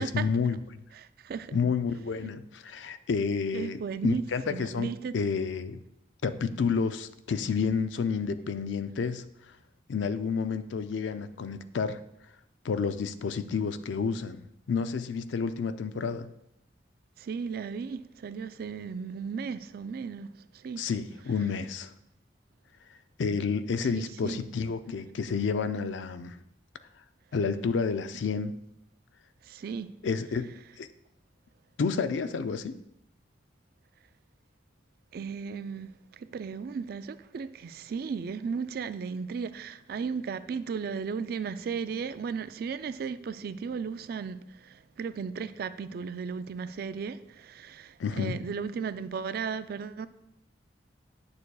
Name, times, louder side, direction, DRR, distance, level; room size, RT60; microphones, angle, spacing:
voice 1, 0.0-0.8 1.5-5.8 6.2-9.3 9.9-12.0 12.6-14.4 14.7-16.3 20.8-21.9 23.2-26.4 27.3-28.5 30.0-30.5 30.8-30.9 31.8-32.8 48.0-48.4, left 5 dB, 80° left, 0.4 m, -30 dB
voice 2, 1.0-1.6 3.5-5.1 17.2-20.3 20.6-20.8 23.9-24.4 29.5-29.9 35.1-35.9 36.2-44.4 44.6-50.1, right 6 dB, 55° right, 0.3 m, -35 dB
9.4 x 6.7 x 2.3 m
head